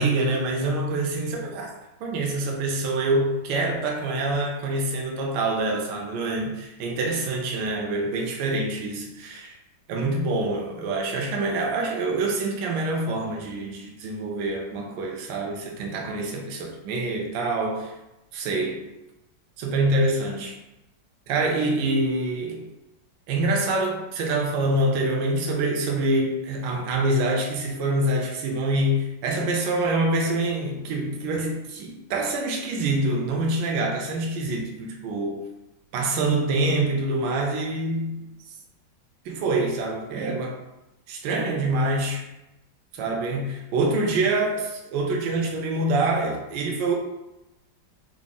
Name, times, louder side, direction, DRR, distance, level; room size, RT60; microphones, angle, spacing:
voice 1, 0.0-1.7 2.0-9.5 9.9-17.9 18.3-18.9 19.6-20.5 21.3-22.7 23.3-35.5 35.9-38.3 39.3-40.6 41.1-42.2 42.9-47.0, right 2 dB, 80° right, 0 dB, 1.3 m, -26 dB
4.7 x 2.1 x 3.7 m, 0.94 s
omnidirectional pair, 2.0 m